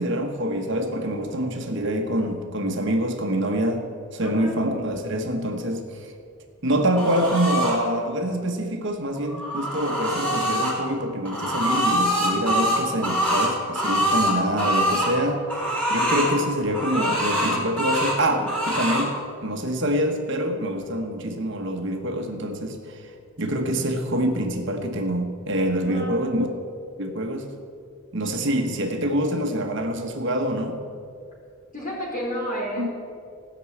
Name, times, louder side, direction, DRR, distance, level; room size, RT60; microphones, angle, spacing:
voice 1, 0.0-3.8 4.1-6.1 6.6-15.4 15.9-23.1 23.4-26.5 27.0-27.5 28.1-30.8 32.8-32.9, right 1 dB, 55° right, 3 dB, 1.2 m, -25 dB
voice 2, 4.2-4.6 25.9-26.2 31.7-32.9, equal, 35° left, -4 dB, 3.9 m, -31 dB
sound 1, 7.0-7.8 9.2-10.7 11.2-15.1 15.5-16.3 16.7-18.2 18.5-19.1, equal, 5° left, 3.5 m, -24 dB
16.5 x 6.1 x 8.5 m, 2.3 s
head